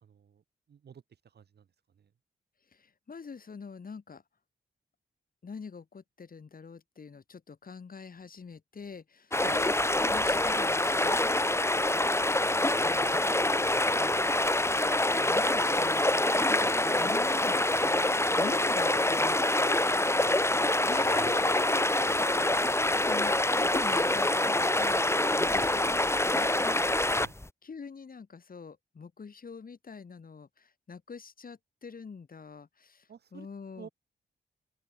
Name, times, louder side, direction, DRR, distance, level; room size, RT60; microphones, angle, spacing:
voice 1, 0.0-0.4 0.7-1.6 9.4-9.6 20.2-20.3 20.6-21.4 27.2-27.4 33.1-33.5 33.8-33.9, right 7 dB, 75° right, 3.9 m, -49 dB
voice 2, 2.7-4.2 5.4-9.7 10.1-11.2 11.9-12.1 12.8-14.4 15.2-17.8 18.4-20.1 20.9-21.9 22.2-25.1 25.4-26.5 27.6-33.9, left 5 dB, 55° left, 6.8 m, -45 dB
sound 1, 9.3-27.5, left 1 dB, 15° left, 2.3 m, -26 dB
open air
cardioid pair, 50°, 17 cm